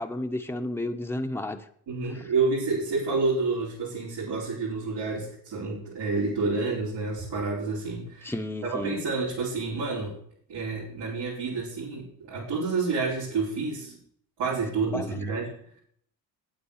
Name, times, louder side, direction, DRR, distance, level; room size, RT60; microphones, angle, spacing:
voice 1, 0.0-1.6 2.0-2.3 8.2-9.0 14.9-15.1, left 1 dB, 5° left, 5 dB, 1.3 m, -32 dB
voice 2, 1.9-8.3 8.6-10.2 10.5-14.0 14.4-15.8, right 4 dB, 75° right, -7 dB, 5.0 m, -29 dB
8.9 x 8.9 x 6.5 m, 0.63 s
supercardioid pair, 65°, 42 cm